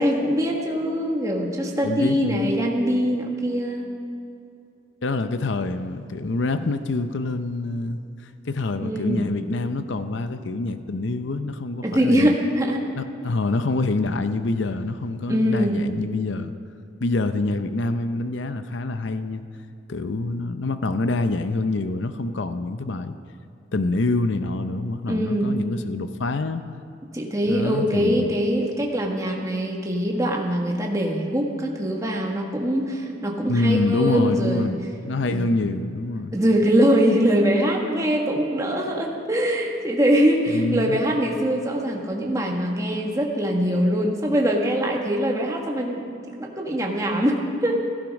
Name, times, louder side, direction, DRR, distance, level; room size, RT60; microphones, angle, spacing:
voice 1, 0.0-3.9 8.8-9.3 11.8-12.8 15.3-15.8 25.1-25.6 27.1-34.7 35.3-35.5 36.3-46.1 46.4-47.9, equal, 15° right, 0 dB, 1.5 m, -23 dB
voice 2, 1.8-2.5 5.0-12.3 13.0-16.5 17.0-19.4 19.9-23.2 23.7-26.6 27.5-28.3 33.5-34.8 35.1-36.3 40.5-41.0, left 2 dB, 70° left, 10 dB, 0.6 m, -26 dB
16.5 x 14.0 x 5.2 m, 2.6 s
head